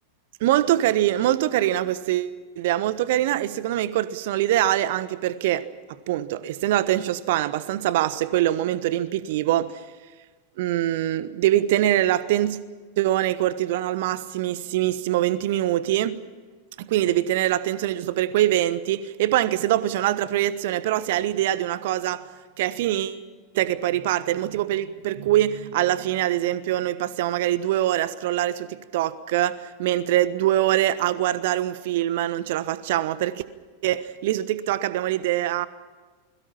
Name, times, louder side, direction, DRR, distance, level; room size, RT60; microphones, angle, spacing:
voice 1, 0.4-5.7 6.1-9.8 10.6-12.6 13.0-16.2 16.8-22.2 22.6-23.2 23.5-33.4 33.8-35.7, right 13 dB, 50° right, 1.3 m, -23 dB
28.5 x 22.0 x 5.8 m
figure-of-eight pair, 90°, 0 cm